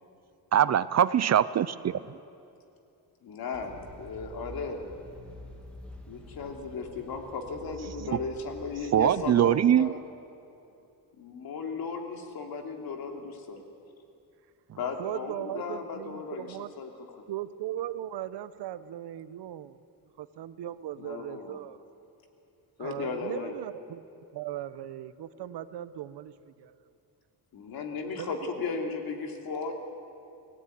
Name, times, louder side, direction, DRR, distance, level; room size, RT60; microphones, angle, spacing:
voice 1, 0.5-2.0 8.9-9.9, right 10 dB, 40° right, 16 dB, 0.5 m, -22 dB
voice 2, 3.2-4.8 6.1-10.0 11.2-13.6 14.8-16.5 16.8-16.9 21.0-21.6 22.8-23.5 27.5-29.7, left 4 dB, 65° left, 3 dB, 3.2 m, -36 dB
sound 1, 3.5-9.3, right 1 dB, 5° left, 2.6 m, -47 dB
voice 3, 15.0-16.7 17.3-19.8 20.2-21.8 22.8-24.0 24.3-26.7 28.2-28.3 28.6-29.0, right 12 dB, 90° right, 14 dB, 1.1 m, -38 dB
28.5 x 18.5 x 9.5 m, 2.6 s
cardioid pair, 170°, 39 cm